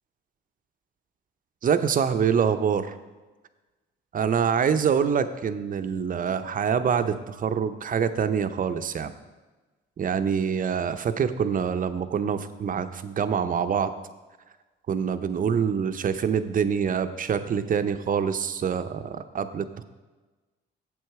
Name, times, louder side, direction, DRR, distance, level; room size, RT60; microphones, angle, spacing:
voice 1, 1.6-2.9 4.1-9.1 10.0-13.9 14.9-19.8, right 7 dB, 45° right, 10 dB, 0.6 m, -25 dB
7.8 x 7.5 x 4.7 m, 1.2 s
cardioid pair, 90°, 20 cm